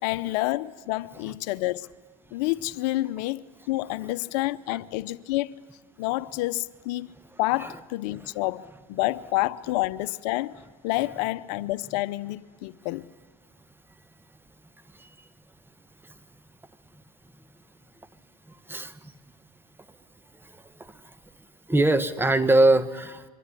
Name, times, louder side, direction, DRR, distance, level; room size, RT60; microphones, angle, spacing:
voice 1, 0.0-1.9 2.3-5.6 6.0-7.1 7.4-13.1, left 18 dB, 75° left, 0.8 m, -29 dB
voice 2, 18.5-19.1 20.3-21.1 21.7-23.3, right 2 dB, 10° right, 1.4 m, -24 dB
24.5 x 24.0 x 9.9 m
supercardioid pair, 95°, 21 cm